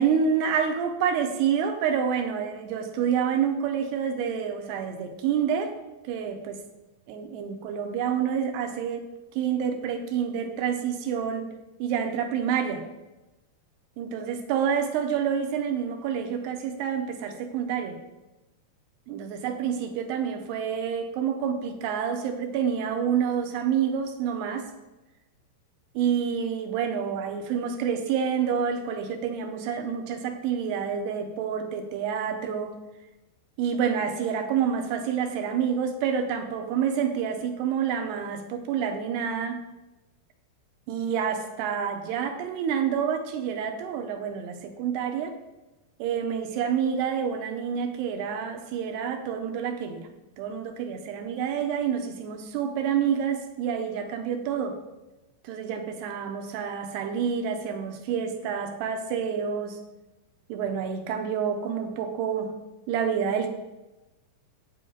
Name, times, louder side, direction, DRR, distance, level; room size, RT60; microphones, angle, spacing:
voice 1, 0.0-5.8 6.0-6.6 7.1-11.5 11.8-12.9 14.0-18.0 19.1-24.7 25.9-32.8 33.6-39.6 40.9-45.4 46.0-50.1 50.4-54.8 55.4-59.8 60.5-62.5 62.9-63.5, right 7 dB, 75° right, 5 dB, 2.6 m, -28 dB
9.1 x 8.5 x 3.8 m, 1.0 s
omnidirectional pair, 5.3 m